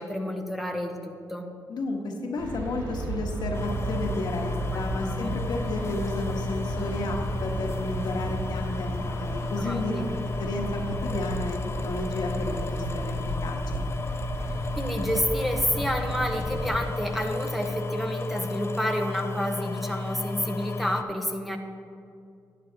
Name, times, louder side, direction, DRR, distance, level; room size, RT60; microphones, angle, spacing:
voice 1, 0.0-1.5 4.7-4.8 5.1-5.3 9.6-10.2 14.8-21.6, equal, ahead, 2 dB, 1.0 m, -29 dB
voice 2, 1.7-9.9 10.4-13.1 13.4-13.8, left 2 dB, 70° left, 2 dB, 1.3 m, -32 dB
sound 1, 2.4-16.8, right 1 dB, 85° right, 2.3 m, -34 dB
sound 2, 3.5-21.0, left 3 dB, 35° left, 0.5 m, -33 dB
12.0 x 10.0 x 2.8 m, 2.5 s
cardioid pair, 65°, 7 cm